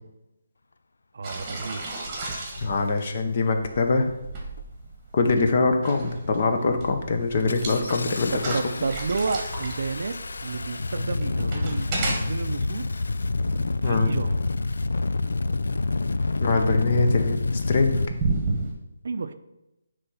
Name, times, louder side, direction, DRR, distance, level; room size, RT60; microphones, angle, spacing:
voice 1, 1.1-1.8 7.8-12.9 13.8-14.4 19.0-19.3, right 4 dB, 55° right, 10 dB, 0.5 m, -31 dB
sound 1, 1.2-18.7, right 3 dB, 15° right, 1.2 m, -34 dB
Engine starting, 1.7-1.8 2.5-2.9 3.6-3.9 4.2-4.8 5.2-5.8 6.1-6.3 6.7-18.1, left 3 dB, 80° left, 0.4 m, -28 dB
voice 2, 2.6-4.1 5.1-8.6 13.5-14.1 16.4-18.0, left 3 dB, 35° left, 6 dB, 0.8 m, -23 dB
9.5 x 3.3 x 5.6 m, 0.92 s
hypercardioid pair, 170°, 0 cm